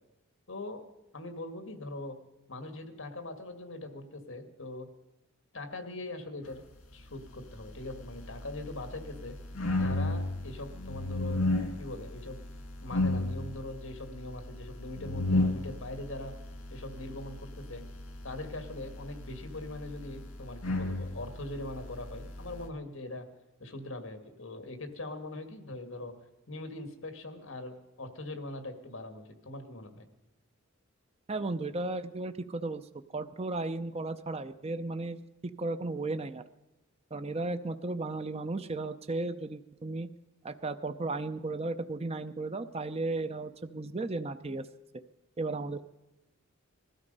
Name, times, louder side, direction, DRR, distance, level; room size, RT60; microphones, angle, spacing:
voice 1, 0.5-0.8 1.1-2.2 2.5-4.9 5.5-6.6 6.9-9.3 9.8-11.4 11.8-12.4 12.8-16.4 16.7-17.8 18.2-23.3 23.6-26.2 26.5-30.1, left 2 dB, 65° left, 7 dB, 1.9 m, -41 dB
sound 1, 7.3-22.7, left 2 dB, 80° left, 2.2 m, -35 dB
voice 2, 31.3-32.9 33.1-35.2 35.6-36.4 37.1-40.1 40.4-44.7 45.4-45.8, right 2 dB, 30° right, 10 dB, 0.6 m, -35 dB
20.0 x 13.0 x 5.4 m, 1.0 s
head